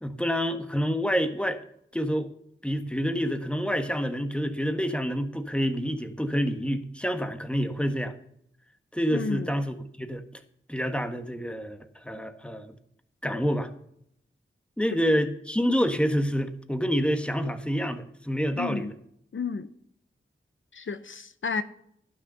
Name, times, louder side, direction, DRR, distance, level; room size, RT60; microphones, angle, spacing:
voice 1, 0.0-1.6 1.9-2.3 2.6-8.1 8.9-10.2 10.7-12.8 13.2-13.7 14.8-18.9, equal, 5° left, 8 dB, 1.3 m, -27 dB
voice 2, 9.1-9.5 18.6-18.9 19.3-19.7 20.7-21.6, left 5 dB, 70° left, 12 dB, 0.7 m, -31 dB
11.5 x 6.4 x 6.8 m, 0.70 s
cardioid pair, 45°, 21 cm